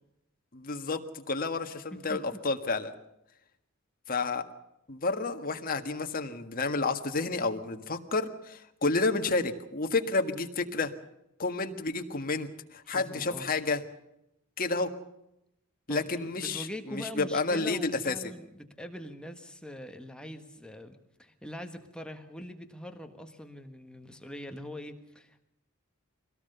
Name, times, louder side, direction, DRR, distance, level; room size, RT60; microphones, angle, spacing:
voice 1, 0.5-2.9 4.1-4.4 4.9-10.9 11.4-13.8 14.6-14.9 15.9-18.2, left 3 dB, 40° left, 6 dB, 1.7 m, -30 dB
voice 2, 12.8-13.5 15.9-25.4, left 1 dB, 5° left, 5 dB, 1.5 m, -43 dB
24.0 x 18.0 x 6.8 m, 0.85 s
head